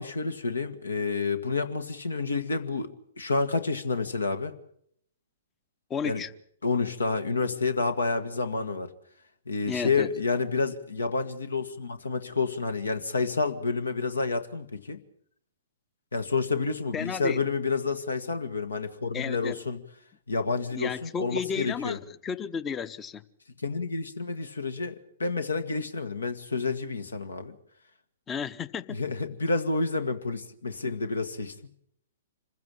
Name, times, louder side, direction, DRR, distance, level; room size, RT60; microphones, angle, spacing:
voice 1, 0.0-2.9 3.2-4.6 6.0-6.2 6.6-8.9 9.5-15.0 16.1-19.8 20.3-22.0 23.6-27.6 28.9-31.5, left 4 dB, 70° left, 1.8 m, -29 dB
voice 2, 5.9-6.3 9.7-10.1 16.9-17.4 19.1-19.6 20.7-23.2 28.3-29.0, left 6 dB, 15° left, 0.9 m, -33 dB
26.0 x 15.5 x 8.7 m
figure-of-eight pair, 115°, 0 cm